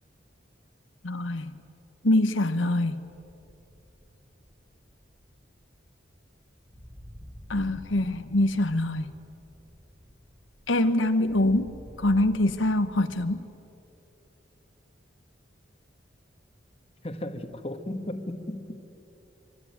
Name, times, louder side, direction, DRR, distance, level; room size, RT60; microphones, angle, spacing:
voice 1, 1.0-1.5 2.0-3.0 7.5-9.1 10.7-13.5, left 1 dB, 90° left, 9 dB, 1.1 m, -24 dB
sound 1, 3.1-13.4, equal, 20° right, 3.4 m, -50 dB
voice 2, 17.0-18.9, left 1 dB, 30° left, 6 dB, 1.5 m, -35 dB
25.5 x 24.5 x 9.4 m, 2.8 s
head